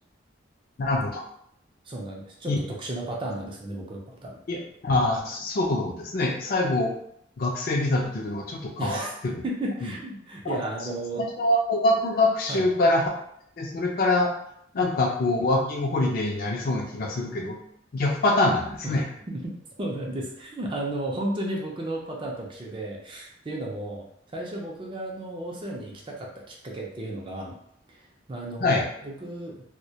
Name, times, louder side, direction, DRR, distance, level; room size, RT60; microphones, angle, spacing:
voice 1, 0.8-1.2 2.5-2.6 4.5-6.9 7.4-9.4 9.8-9.9 10.4-10.6 11.2-13.1 13.6-14.3 14.7-17.6 17.9-19.0 28.6-28.8, left 2 dB, 50° left, 0 dB, 0.4 m, -24 dB
voice 2, 1.9-4.4 8.8-9.1 9.4-11.2 12.5-12.6 18.8-19.0 19.3-27.5 27.9-28.0 28.3-29.6, right 1 dB, 25° right, -1 dB, 0.4 m, -34 dB
2.1 x 2.1 x 2.7 m, 0.71 s
head